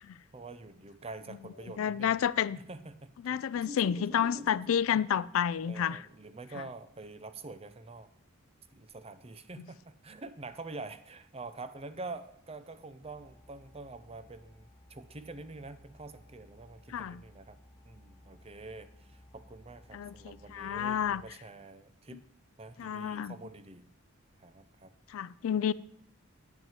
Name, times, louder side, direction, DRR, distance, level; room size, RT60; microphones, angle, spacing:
voice 1, 0.3-2.2 2.6-5.0 5.7-8.1 8.7-17.6 17.8-22.2 22.6-23.8 24.4-24.9, right 2 dB, 30° right, 0.6 m, -46 dB
voice 2, 1.8-2.6 3.2-6.0 16.9-17.2 19.9-21.2 22.1-22.2 22.8-23.3 25.1-25.7, left 8 dB, 75° left, 0.3 m, -30 dB
sound 1, 13.0-21.3, left 1 dB, 10° left, 1.4 m, -58 dB
9.1 x 6.0 x 7.3 m
head